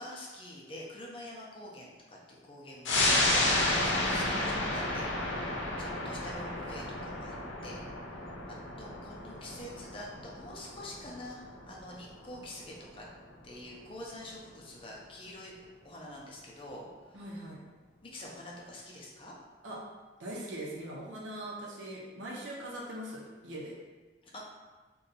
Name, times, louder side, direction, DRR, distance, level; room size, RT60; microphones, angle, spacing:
voice 1, 0.0-7.3 7.6-7.8 8.5-11.4 11.7-13.1 13.4-15.5 15.8-17.2 18.0-19.3 24.2-24.5, left 1 dB, 30° left, -3 dB, 0.5 m, -46 dB
sound 1, 2.8-13.8 14.2-14.3, left 2 dB, 80° left, 0.6 m, -32 dB
voice 2, 3.7-4.5 17.1-17.6 19.6-19.8 20.2-23.7, right 1 dB, 90° right, -4 dB, 0.6 m, -41 dB
2.7 x 2.2 x 3.9 m, 1.3 s
head